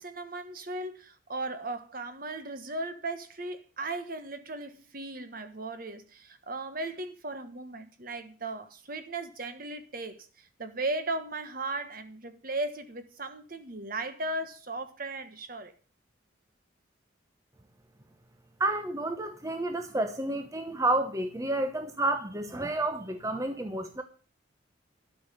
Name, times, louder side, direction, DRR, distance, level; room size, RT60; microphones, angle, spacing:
voice 1, 0.0-15.7, right 2 dB, 45° right, 1.4 m, -37 dB
voice 2, 18.6-24.0, right 2 dB, 15° right, 1.0 m, -30 dB
12.5 x 6.1 x 8.4 m
head